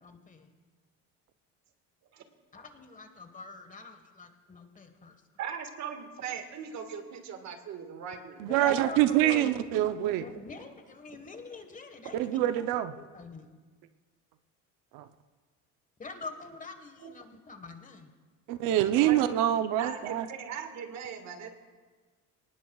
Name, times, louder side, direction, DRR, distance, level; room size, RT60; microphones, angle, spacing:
voice 1, 0.0-0.5 2.5-5.2 8.5-9.8 10.2-12.5 13.0-13.5 16.0-18.1, left 3 dB, 25° left, 7 dB, 1.4 m, -44 dB
voice 2, 5.4-8.5 17.0-17.1 18.7-19.2 19.8-21.5, right 7 dB, 60° right, 6 dB, 1.7 m, -39 dB
voice 3, 8.4-10.2 12.2-12.9 14.9-15.0 18.5-20.3, right 13 dB, 85° right, 10 dB, 0.7 m, -25 dB
22.5 x 19.0 x 2.3 m, 1.4 s
cardioid pair, 115°, 32 cm